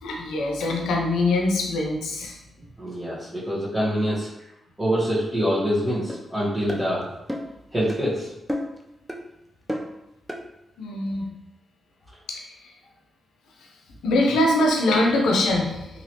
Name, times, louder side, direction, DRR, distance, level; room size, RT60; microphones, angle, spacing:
voice 1, 0.0-2.4 10.8-11.3 12.3-12.5 14.0-15.9, left 2 dB, 85° left, 1 dB, 0.5 m, -23 dB
voice 2, 2.8-4.3 4.8-7.0 7.7-8.3, equal, 20° right, -12 dB, 1.3 m, -25 dB
sound 1, 6.1-6.2 6.7-6.8 7.3-7.5 7.9-8.0 8.5-8.8 9.1-9.2 9.7-9.9 10.3-10.4, equal, 5° right, 0.6 m, -30 dB
2.9 x 2.8 x 2.8 m, 0.89 s
supercardioid pair, 45°, 0 cm